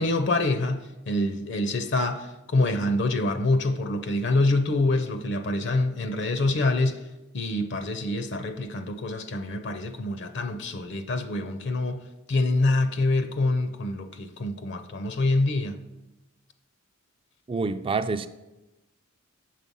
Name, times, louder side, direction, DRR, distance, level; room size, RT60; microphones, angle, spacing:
voice 1, 0.0-7.0 7.3-12.0 12.3-15.8, left 2 dB, 55° left, 0.5 m, -26 dB
voice 2, 17.5-18.3, right 4 dB, 25° right, 0.4 m, -27 dB
7.4 x 6.5 x 5.4 m
head